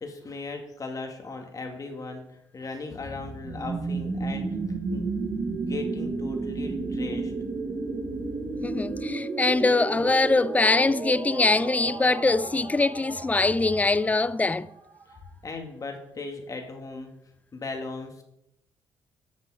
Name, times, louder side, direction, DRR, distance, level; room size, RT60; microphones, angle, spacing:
voice 1, 0.0-2.2 2.5-4.5 4.9-5.1 5.6-7.3 15.1-17.1 17.5-18.2, left 3 dB, 35° left, 2.1 m, -37 dB
sound 1, 2.9-9.0, left 3 dB, 75° left, 1.7 m, -43 dB
sound 2, 3.4-15.2, right 4 dB, 40° right, 1.3 m, -33 dB
voice 2, 8.6-14.7, left 3 dB, 15° left, 0.4 m, -23 dB
10.5 x 6.6 x 4.9 m
supercardioid pair, 75°, 9 cm